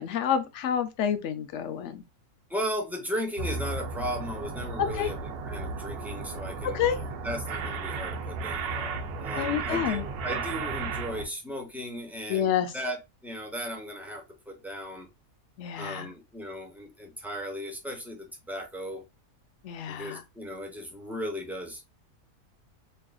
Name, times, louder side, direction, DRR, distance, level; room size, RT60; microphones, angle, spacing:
voice 1, 0.0-2.0 4.8-5.1 6.6-7.0 9.4-10.0 12.3-12.7 15.6-16.1 19.6-20.2, left 9 dB, 65° left, 0.8 m, -28 dB
voice 2, 2.5-13.0 13.2-15.1 15.7-19.0 19.9-21.8, equal, ahead, 0.6 m, -36 dB
sound 1, 3.4-11.2, right 4 dB, 85° right, 1.2 m, -34 dB
5.3 x 2.6 x 2.3 m
omnidirectional pair, 1.6 m